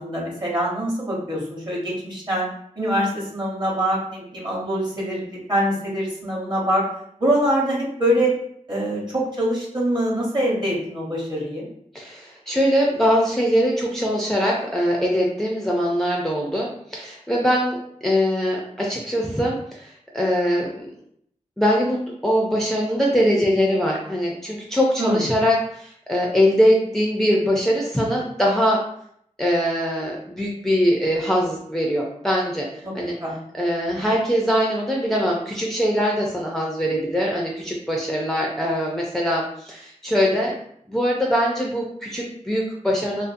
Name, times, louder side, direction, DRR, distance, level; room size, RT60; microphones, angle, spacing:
voice 1, 0.0-2.5 2.8-6.8 7.2-8.3 8.7-11.7 25.0-25.2 32.8-32.9 33.2-33.4 33.9-34.1, right 1 dB, 35° right, -4 dB, 1.0 m, -24 dB
voice 2, 11.9-17.8 18.0-20.7 21.6-28.8 29.4-32.7 32.9-33.1 33.5-40.5 40.9-43.3, equal, 5° left, -2 dB, 0.4 m, -22 dB
2.5 x 2.4 x 2.5 m, 0.68 s
wide cardioid pair, 70°, 13 cm